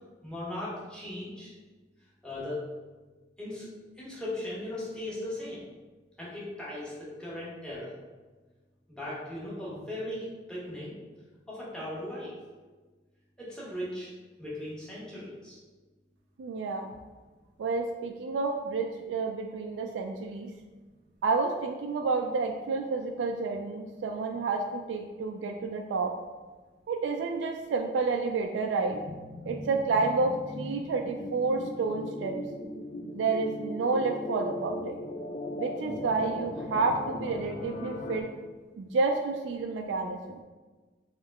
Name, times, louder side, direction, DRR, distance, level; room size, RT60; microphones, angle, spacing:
voice 1, 0.2-1.5 2.2-2.6 3.4-3.7 4.0-5.6 6.2-7.9 8.9-10.9 11.5-12.4 13.4-14.1 14.4-15.6, left 1 dB, 5° left, -8 dB, 1.1 m, -38 dB
voice 2, 16.4-16.9 17.6-20.5 21.2-26.1 26.9-29.0 29.5-32.4 33.1-35.0 35.6-38.3 38.8-40.4, right 4 dB, 80° right, 3 dB, 0.3 m, -30 dB
sound 1, 28.9-38.2, left 1 dB, 35° left, 0.3 m, -38 dB
3.4 x 3.2 x 3.5 m, 1.3 s
head